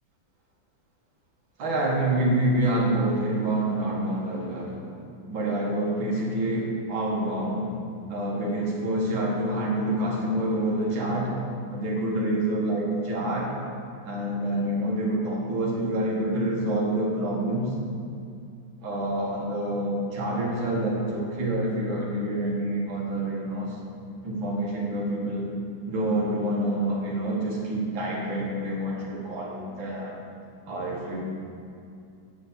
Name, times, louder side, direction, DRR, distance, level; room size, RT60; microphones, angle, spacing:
voice 1, 1.6-4.8 5.3-7.7 8.1-11.3 11.7-13.5 14.1-17.7 18.8-23.8 24.2-25.5 25.9-30.2 30.7-31.2, right 1 dB, 80° right, -3 dB, 2.3 m, -27 dB
8.0 x 5.1 x 6.8 m, 2.5 s
omnidirectional pair, 2.1 m